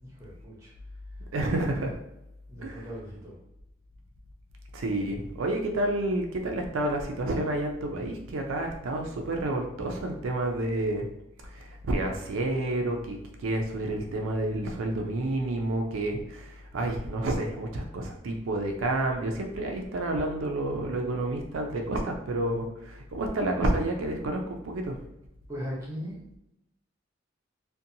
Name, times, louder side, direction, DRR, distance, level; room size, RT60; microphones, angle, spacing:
voice 1, 0.0-0.7 2.5-3.4 25.5-26.4, equal, 15° right, -6 dB, 0.8 m, -39 dB
voice 2, 1.3-2.0 2.6-2.9 4.7-11.1 11.5-13.2 13.4-24.9, right 1 dB, 85° right, 2 dB, 0.4 m, -29 dB
2.6 x 2.2 x 2.6 m, 0.83 s
head